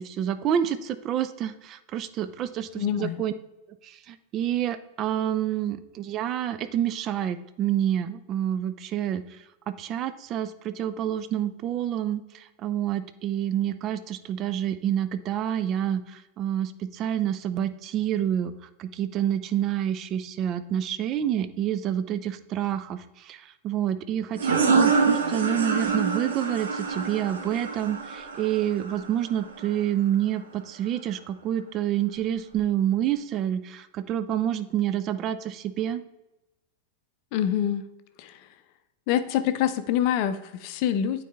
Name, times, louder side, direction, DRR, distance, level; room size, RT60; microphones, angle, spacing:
voice 1, 0.0-3.3 3.8-9.2 9.7-12.2 12.6-18.5 18.8-36.0, right 10 dB, 35° right, 11 dB, 0.5 m, -28 dB
voice 2, 2.7-3.2 37.3-37.9 38.2-38.5 39.1-41.2, left 10 dB, 45° left, 10 dB, 0.5 m, -26 dB
sound 1, 24.4-29.7, right 4 dB, 65° right, 0.9 m, -26 dB
9.1 x 4.1 x 3.4 m, 0.96 s
figure-of-eight pair, 90°, 0 cm